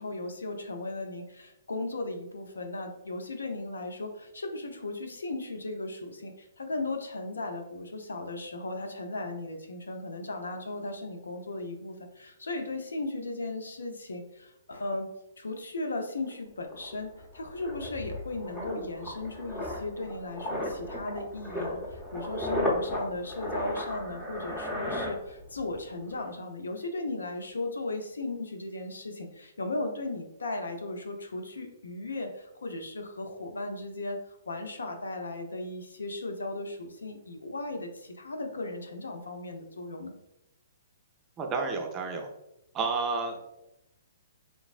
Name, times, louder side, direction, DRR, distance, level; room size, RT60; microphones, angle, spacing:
voice 1, 0.0-15.1 15.4-40.1, left 2 dB, 90° left, 5 dB, 0.4 m, -36 dB
sound 1, 16.3-16.4 16.7-25.8 26.0-26.3, left 1 dB, 10° left, 0.7 m, -35 dB
voice 2, 41.4-42.3 42.7-43.5, right 4 dB, 25° right, 3 dB, 0.4 m, -30 dB
3.2 x 2.0 x 2.4 m, 0.85 s
hypercardioid pair, 135°, 0 cm